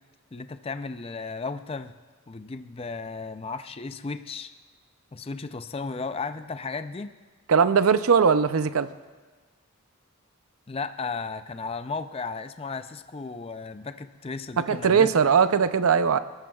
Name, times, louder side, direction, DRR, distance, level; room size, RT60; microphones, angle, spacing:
voice 1, 0.3-1.9 2.3-4.5 5.1-7.1 10.7-15.1, left 4 dB, 25° left, 9 dB, 0.4 m, -34 dB
voice 2, 7.5-8.9 14.7-16.2, right 6 dB, 85° right, 12 dB, 0.6 m, -20 dB
29.5 x 13.5 x 2.4 m, 1.4 s
head